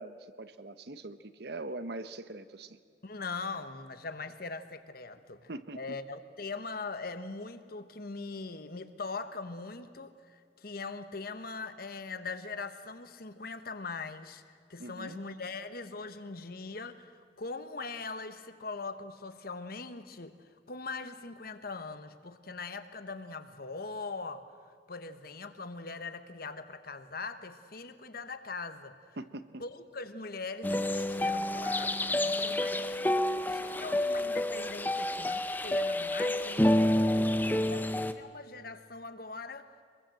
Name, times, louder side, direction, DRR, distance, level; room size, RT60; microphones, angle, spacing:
voice 1, 0.0-2.8 5.5-6.0 14.8-15.2 29.2-29.6, right 2 dB, 60° right, 12 dB, 1.0 m, -42 dB
voice 2, 3.0-14.4 14.7-24.5 24.9-29.0 29.6-33.0 33.5-39.7, left 4 dB, 55° left, 10 dB, 1.2 m, -41 dB
sound 1, 30.6-38.1, left 1 dB, 10° left, 0.7 m, -29 dB
24.0 x 22.5 x 7.7 m, 2.1 s
head